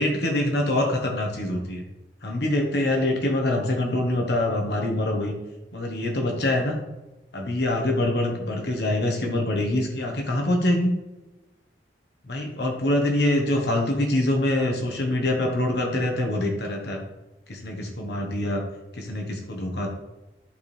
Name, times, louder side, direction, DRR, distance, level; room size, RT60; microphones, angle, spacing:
voice 1, 0.0-1.8 2.2-5.3 5.7-6.8 7.3-10.9 12.3-17.0 17.5-18.6 18.9-19.9, left 1 dB, 65° left, 2 dB, 1.1 m, -24 dB
11.5 x 4.3 x 3.3 m, 1.1 s
head